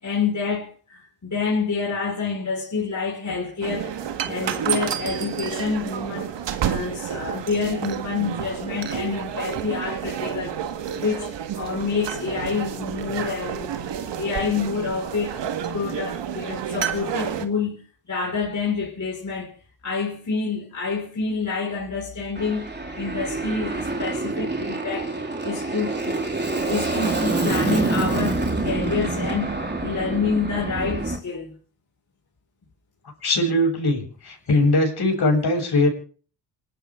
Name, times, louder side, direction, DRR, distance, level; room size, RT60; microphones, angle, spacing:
voice 1, 0.0-6.4 6.6-10.6 10.9-15.4 15.7-19.5 19.8-25.1 25.4-26.3 26.7-31.5, left 5 dB, 40° left, 5.4 m, -28 dB
sound 1, 3.6-17.5, right 9 dB, 65° right, 1.9 m, -30 dB
Aircraft, 22.3-31.2, right 2 dB, 20° right, 3.8 m, -26 dB
voice 2, 33.2-35.9, left 2 dB, 55° left, 7.7 m, -21 dB
28.0 x 12.5 x 3.8 m
hypercardioid pair, 45°, 46 cm